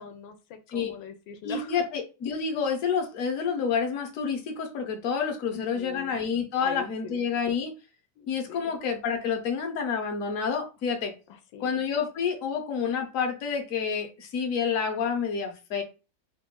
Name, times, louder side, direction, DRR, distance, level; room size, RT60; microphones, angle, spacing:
voice 1, 0.0-1.8 5.5-6.2 6.6-7.2 8.2-8.7 11.3-11.8, left 7 dB, 80° left, 1.3 m, -42 dB
voice 2, 1.4-7.7 8.3-11.1 11.6-15.8, left 6 dB, 55° left, 1.0 m, -29 dB
3.6 x 2.5 x 3.7 m
omnidirectional pair, 2.0 m